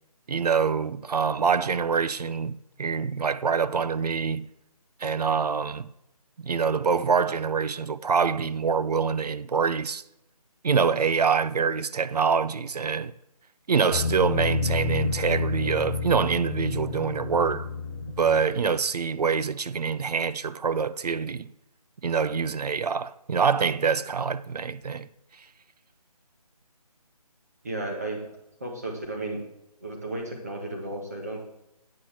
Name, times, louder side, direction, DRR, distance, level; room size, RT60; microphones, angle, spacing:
voice 1, 0.3-4.5 5.0-5.9 6.4-10.0 10.6-13.1 13.7-17.7 18.2-21.5 22.0-25.1, right 6 dB, 90° right, 0.5 m, -25 dB
sound 1, 13.9-18.7, left 4 dB, 35° left, 1.0 m, -30 dB
voice 2, 27.6-28.2 28.6-29.4 29.8-31.4, right 2 dB, 25° right, 1.5 m, -33 dB
8.5 x 4.5 x 7.3 m
hypercardioid pair, 180°, 20 cm